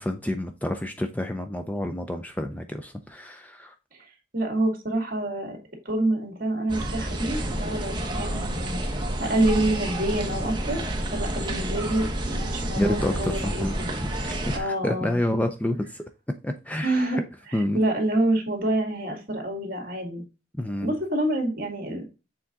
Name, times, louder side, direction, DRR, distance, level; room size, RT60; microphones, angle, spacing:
voice 1, 0.0-3.7 12.8-13.7 14.0-16.0 16.4-17.1 17.5-17.8 20.6-20.9, left 1 dB, 10° left, 0.4 m, -29 dB
voice 2, 4.3-5.6 5.9-8.8 9.2-10.8 11.1-13.9 14.5-15.2 16.8-17.2 17.5-20.2 20.8-22.2, right 1 dB, 50° right, 2.1 m, -27 dB
sound 1, 6.7-14.6, right 1 dB, 25° right, 1.0 m, -29 dB
7.0 x 3.8 x 3.6 m
head